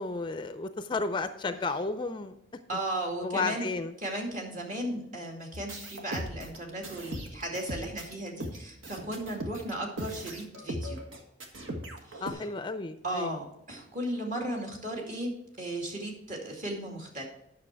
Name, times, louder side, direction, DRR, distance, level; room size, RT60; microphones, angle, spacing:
voice 1, 0.0-2.4 3.2-3.9 12.2-13.3, left 3 dB, 25° left, 10 dB, 0.4 m, -32 dB
voice 2, 2.7-3.7 4.0-11.0 12.1-12.5 13.0-15.3 15.6-17.2, right 1 dB, 45° right, 0 dB, 2.3 m, -35 dB
sound 1, 5.5-12.3, right 1 dB, 80° right, 1.6 m, -39 dB
10.0 x 6.2 x 4.7 m, 0.82 s
head